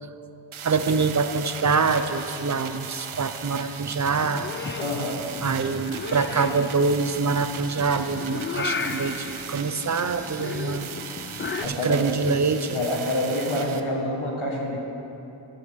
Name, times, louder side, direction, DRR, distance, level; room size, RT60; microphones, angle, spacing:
sound 1, 0.5-13.8, right 7 dB, 85° right, 0.7 m, -38 dB
voice 1, 0.6-4.5 5.4-10.9 11.7-12.8, right 4 dB, 35° right, 9 dB, 0.6 m, -25 dB
Purr / Meow, 4.2-11.7, left 5 dB, 25° left, 0.4 m, -35 dB
voice 2, 4.8-5.2 11.6-12.0 12.7-14.8, left 1 dB, 90° left, -1 dB, 1.6 m, -27 dB
11.5 x 11.0 x 3.6 m, 2.9 s
wide cardioid pair, 40°, 47 cm